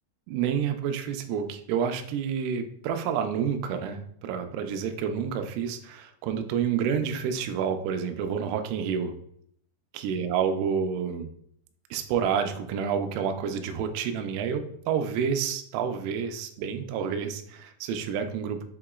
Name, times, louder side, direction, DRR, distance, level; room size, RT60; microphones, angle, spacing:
voice 1, 0.3-9.1 9.9-11.3 11.9-18.6, right 7 dB, 85° right, 6 dB, 3.1 m, -29 dB
7.6 x 2.9 x 2.3 m, 0.67 s
omnidirectional pair, 5.7 m